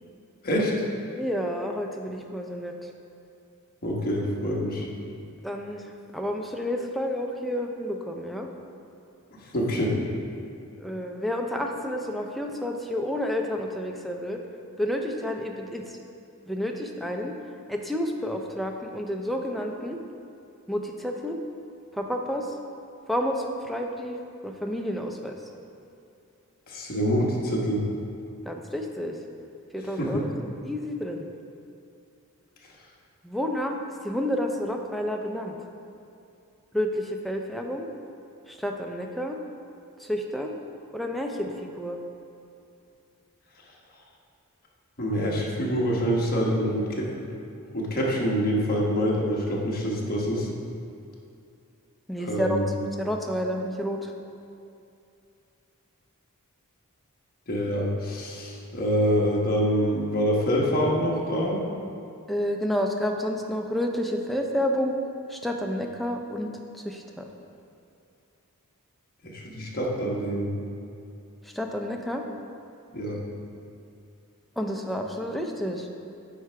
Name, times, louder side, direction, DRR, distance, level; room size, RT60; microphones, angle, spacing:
voice 1, 1.2-2.9 5.4-8.5 10.8-14.4 14.8-16.0 16.5-17.3 17.7-20.0 20.7-21.4 21.9-22.6 23.1-24.2 24.4-25.4 28.5-29.2 29.7-30.3 30.6-31.3 33.2-33.8 34.0-35.6 36.7-37.9 38.5-39.4 40.0-40.5 40.9-42.0 52.1-52.6 53.0-54.1 62.3-64.9 65.3-66.5 66.8-67.3 71.4-72.2 74.6-75.9, equal, ahead, 2 dB, 0.4 m, -30 dB
voice 2, 3.8-4.9 9.5-9.9 26.7-27.8 30.0-30.2 45.0-47.1 47.7-50.5 52.2-52.6 57.5-61.6 69.2-70.5 72.9-73.2, equal, 45° left, -3 dB, 1.1 m, -26 dB
9.5 x 3.3 x 4.7 m, 2.6 s
head